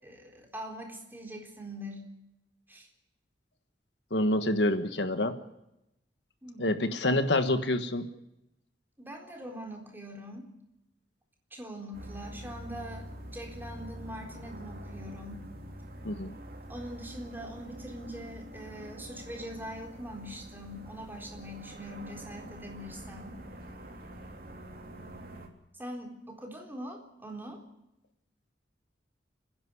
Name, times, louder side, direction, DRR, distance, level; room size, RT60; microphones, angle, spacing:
voice 1, 0.0-2.1 2.7-2.9 6.4-6.9 9.0-10.5 11.5-15.5 16.7-23.4 25.7-27.6, equal, 10° right, 1 dB, 4.0 m, -43 dB
voice 2, 4.1-5.4 6.6-8.1 16.0-16.3, left 1 dB, 75° left, 9 dB, 1.5 m, -27 dB
sound 1, 11.9-25.5, equal, 55° right, 3.2 m, -45 dB
29.5 x 10.5 x 9.8 m, 0.86 s
head